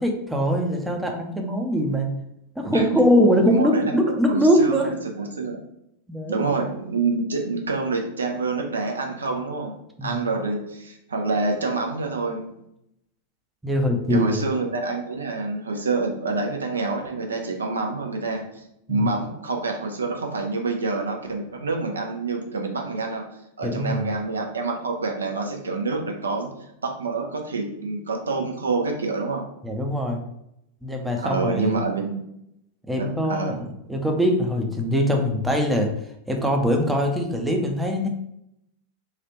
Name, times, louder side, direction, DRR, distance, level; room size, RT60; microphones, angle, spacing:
voice 1, 0.0-2.1 2.6-5.0 6.1-6.4 10.0-10.2 13.6-14.4 18.9-19.1 23.6-24.0 29.6-30.2 30.8-31.8 32.9-35.9 36.3-38.1, equal, 5° right, 2 dB, 0.5 m, -22 dB
voice 2, 3.5-5.6 6.3-9.8 10.0-12.5 14.1-18.6 18.9-23.2 23.6-26.5 26.8-29.4 31.2-32.1 33.0-33.6, right 3 dB, 70° right, 2 dB, 0.5 m, -27 dB
3.2 x 2.4 x 2.9 m, 0.79 s
figure-of-eight pair, 90°, 0 cm